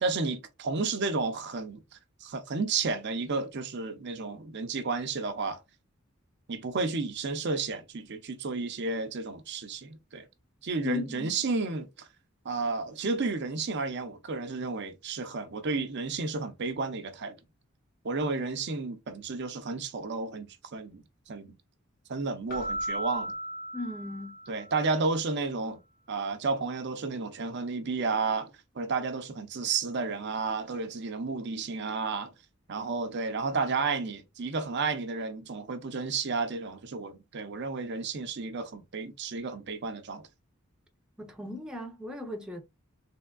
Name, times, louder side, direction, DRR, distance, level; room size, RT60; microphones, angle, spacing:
voice 1, 0.0-1.8 2.2-5.6 6.5-10.3 10.6-12.1 12.4-17.4 18.0-21.5 22.1-23.3 24.5-25.8 26.1-28.5 28.8-32.3 32.7-40.3, right 4 dB, 55° right, 0.6 m, -32 dB
voice 2, 10.8-11.4 23.7-24.3 41.2-42.6, left 2 dB, 5° right, 0.6 m, -37 dB
Keyboard (musical), 22.5-24.9, equal, 45° left, 0.9 m, -36 dB
3.5 x 3.3 x 2.2 m
head